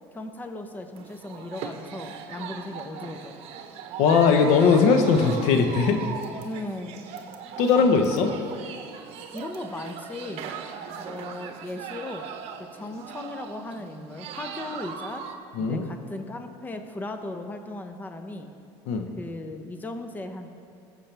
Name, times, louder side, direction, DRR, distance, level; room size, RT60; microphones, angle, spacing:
voice 1, 0.1-3.3 6.4-7.0 9.3-10.5 11.0-12.3 12.6-15.2 15.6-18.5 19.2-20.5, left 2 dB, 15° left, 6 dB, 0.8 m, -37 dB
sound 1, 1.0-15.4, right 7 dB, 60° right, 1.1 m, -39 dB
voice 2, 4.0-6.0 7.6-8.3 15.5-15.9 18.9-19.1, left 5 dB, 70° left, 5 dB, 1.0 m, -19 dB
19.5 x 7.4 x 3.4 m, 2.5 s
supercardioid pair, 110°, 12 cm